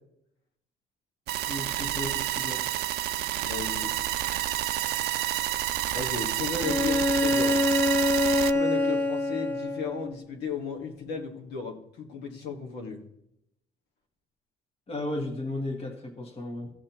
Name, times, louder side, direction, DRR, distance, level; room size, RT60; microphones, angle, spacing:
sound 1, 1.3-8.5, right 14 dB, 75° right, 0.5 m, -29 dB
voice 1, 1.4-2.6 14.9-16.7, left 1 dB, 35° left, 4 dB, 1.5 m, -34 dB
voice 2, 3.4-3.9 5.9-7.6 8.5-13.0, left 5 dB, 75° left, 0 dB, 1.8 m, -34 dB
Bowed string instrument, 6.6-10.1, left 2 dB, 10° left, 2.0 m, -25 dB
16.0 x 6.4 x 3.1 m, 0.80 s
cardioid pair, 110°, 17 cm